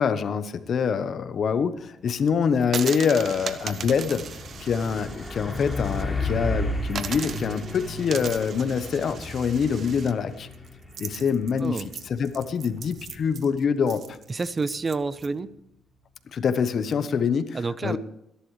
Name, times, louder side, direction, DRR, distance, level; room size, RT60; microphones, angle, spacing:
voice 1, 0.0-4.3 4.6-10.5 11.0-11.8 12.1-14.2 16.3-18.0, left 6 dB, 55° left, 12 dB, 1.0 m, -25 dB
Truck, 2.2-2.4 2.8-15.3, left 2 dB, 10° left, 3.1 m, -35 dB
sound 1, 2.6-6.0 6.4-6.5 6.9-15.3, right 7 dB, 55° right, 0.9 m, -38 dB
voice 2, 14.3-15.5 17.5-18.0, right 4 dB, 30° right, 16 dB, 0.6 m, -28 dB
21.5 x 11.5 x 3.3 m, 0.80 s
cardioid pair, 90°, 0 cm